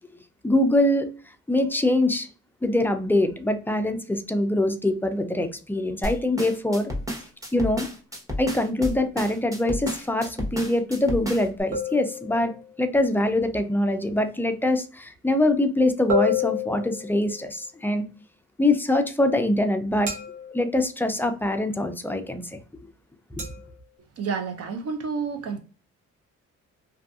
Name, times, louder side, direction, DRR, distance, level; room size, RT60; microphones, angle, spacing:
voice 1, 0.4-1.1 1.5-2.3 2.6-6.9 7.5-7.9 8.4-12.5 12.8-18.0 18.6-20.1 20.5-22.6 23.3-23.4, left 1 dB, 5° left, 0.3 m, -23 dB
sound 1, 6.0-11.6, equal, 10° right, 0.9 m, -31 dB
sound 2, 11.7-12.8 16.1-17.5 20.1-20.8 23.4-23.7, left 5 dB, 70° right, 1.2 m, -29 dB
voice 2, 24.2-25.6, right 5 dB, 55° right, 0.7 m, -29 dB
2.6 x 2.5 x 2.3 m
cardioid pair, 90°, 30 cm